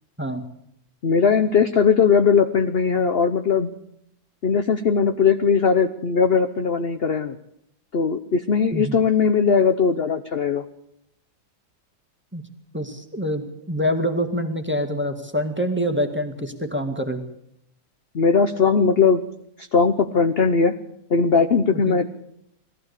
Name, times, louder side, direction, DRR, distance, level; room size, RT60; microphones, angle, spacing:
voice 1, 1.0-3.7 4.4-7.3 7.9-10.6 18.1-19.2 19.6-20.7 21.1-22.0, left 5 dB, 45° left, 8 dB, 0.8 m, -19 dB
voice 2, 12.7-17.2 21.7-22.0, equal, 5° right, 5 dB, 2.0 m, -26 dB
20.5 x 15.0 x 8.4 m, 0.74 s
omnidirectional pair, 2.1 m